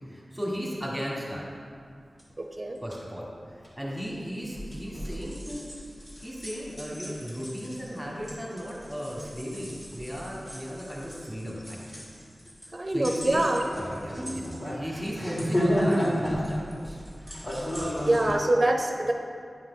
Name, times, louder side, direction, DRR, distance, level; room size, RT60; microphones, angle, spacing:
voice 1, 0.1-1.5 2.8-5.6 6.2-12.0 12.9-13.4 14.0-17.0, equal, 5° right, -5 dB, 1.6 m, -36 dB
sound 1, 2.2-2.3 2.7-3.0 3.6-3.7 4.5-18.3, equal, 40° left, 1.9 m, -33 dB
voice 2, 2.4-2.8 12.7-13.7 14.1-14.5 18.0-19.1, right 1 dB, 30° right, 3 dB, 0.6 m, -25 dB
9.4 x 4.9 x 3.8 m, 2.2 s
wide cardioid pair, 70°, 0 cm